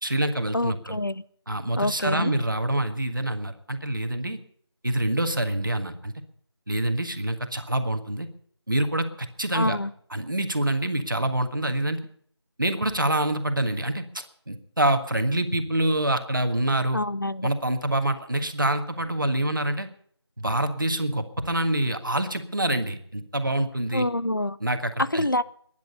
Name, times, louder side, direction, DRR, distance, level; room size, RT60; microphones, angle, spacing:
voice 1, 0.0-1.0 1.5-4.4 4.8-6.1 6.7-8.3 8.7-9.8 10.1-12.0 12.6-17.0 17.4-19.9 20.4-24.1 24.6-25.3, right 1 dB, 50° right, 7 dB, 1.7 m, -26 dB
voice 2, 0.5-1.2 1.8-2.3 9.5-9.9 16.9-17.5 23.9-24.6 25.0-25.4, left 1 dB, 50° left, 16 dB, 0.5 m, -26 dB
20.5 x 10.5 x 5.5 m, 0.62 s
figure-of-eight pair, 175°, 14 cm